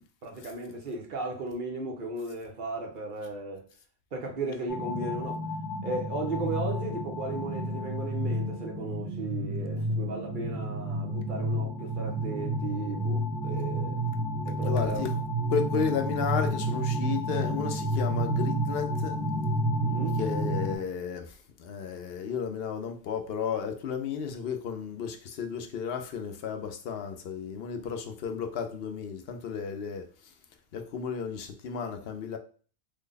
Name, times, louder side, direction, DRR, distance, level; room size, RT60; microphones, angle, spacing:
voice 1, 0.0-3.6 4.1-5.4 5.8-14.0 14.4-15.1 19.8-20.2, right 2 dB, 50° right, 1.1 m, -36 dB
sound 1, 4.7-20.8, right 1 dB, 15° right, 1.4 m, -30 dB
voice 2, 14.6-15.2 15.5-19.2 20.2-30.3 30.7-32.4, left 6 dB, 70° left, 0.8 m, -33 dB
3.4 x 2.2 x 3.8 m
omnidirectional pair, 1.1 m